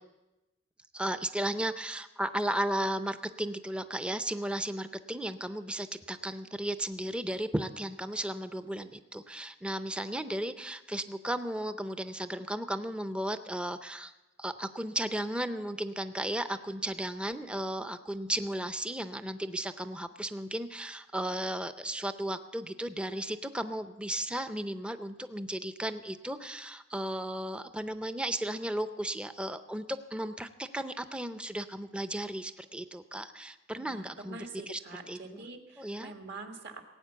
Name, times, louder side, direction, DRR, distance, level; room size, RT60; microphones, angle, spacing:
voice 1, 0.9-14.1 14.4-34.8 35.1-35.4 35.8-36.1, right 1 dB, 5° right, 11 dB, 0.5 m, -35 dB
voice 2, 33.8-36.8, right 3 dB, 60° right, 4 dB, 1.6 m, -45 dB
18.0 x 9.0 x 6.9 m, 1.0 s
head